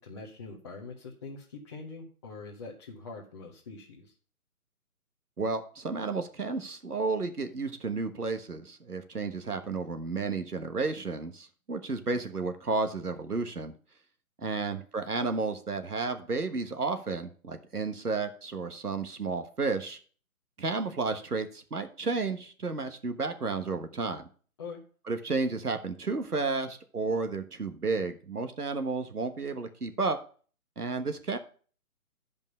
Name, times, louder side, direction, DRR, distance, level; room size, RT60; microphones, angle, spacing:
voice 1, 0.0-4.1 14.4-14.7 24.6-24.8, left 4 dB, 20° left, -5 dB, 0.9 m, -44 dB
voice 2, 5.4-13.7 14.4-20.0 20.6-24.3 25.1-30.2 30.8-31.4, right 3 dB, 85° right, 8 dB, 1.4 m, -32 dB
10.5 x 5.3 x 5.5 m, 0.42 s
figure-of-eight pair, 145°, 44 cm